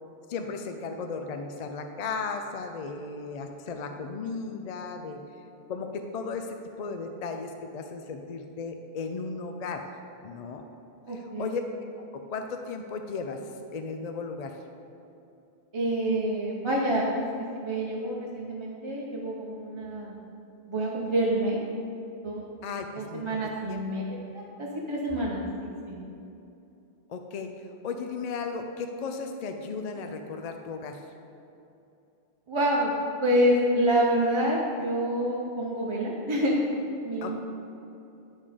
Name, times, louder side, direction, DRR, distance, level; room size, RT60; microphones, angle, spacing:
voice 1, 0.3-5.2 5.7-9.9 10.2-10.6 11.1-11.6 12.0-14.6 22.6-23.3 23.7-23.8 27.1-31.1 37.2-37.4, left 4 dB, 55° left, 5 dB, 0.4 m, -35 dB
voice 2, 11.1-11.5 15.7-20.1 20.7-21.6 22.2-22.4 23.0-24.0 24.3-26.0 32.5-36.6 37.0-37.4, equal, 30° right, -4 dB, 0.7 m, -27 dB
10.5 x 3.6 x 5.0 m, 2.8 s
omnidirectional pair, 1.1 m